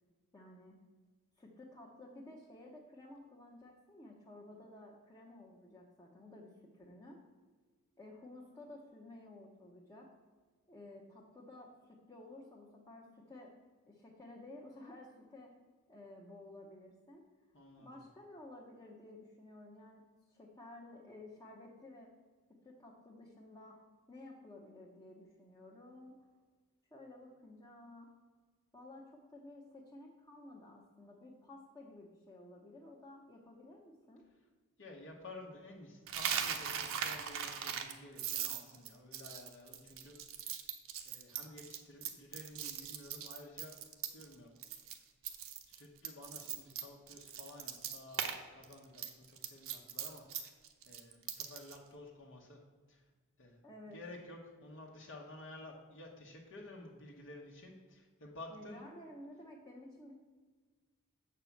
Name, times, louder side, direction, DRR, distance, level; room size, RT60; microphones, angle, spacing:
voice 1, 0.3-0.8 1.4-7.2 8.0-10.1 10.7-13.5 13.9-15.5 15.9-17.3 17.8-22.1 22.5-23.8 24.1-26.2 26.9-28.1 28.7-34.3 53.6-54.0 58.5-60.1, left 1 dB, 15° left, -3 dB, 0.9 m, -54 dB
voice 2, 17.5-17.9 34.8-40.6 41.0-43.8 44.1-44.5 44.9-45.0 45.7-50.6 50.8-52.6 52.9-53.1 53.4-58.8, left 2 dB, 60° left, -1 dB, 1.2 m, -52 dB
Coin (dropping), 36.1-44.3 44.6-45.0 45.2-48.4 48.6-51.8, right 8 dB, 60° right, 0.9 m, -40 dB
7.4 x 4.8 x 7.0 m, 1.5 s
head